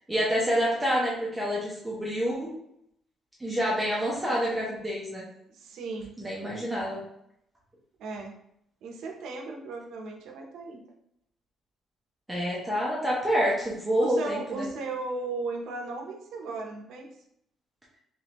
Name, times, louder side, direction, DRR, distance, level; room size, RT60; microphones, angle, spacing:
voice 1, 0.1-2.5 3.4-5.2 6.2-7.0 12.3-14.7, equal, 5° right, -5 dB, 0.7 m, -27 dB
voice 2, 5.5-6.2 8.0-8.3 8.8-10.8 14.0-17.1, right 3 dB, 75° right, 2 dB, 0.7 m, -36 dB
3.6 x 3.2 x 3.0 m, 0.74 s
cardioid pair, 170°, 0 cm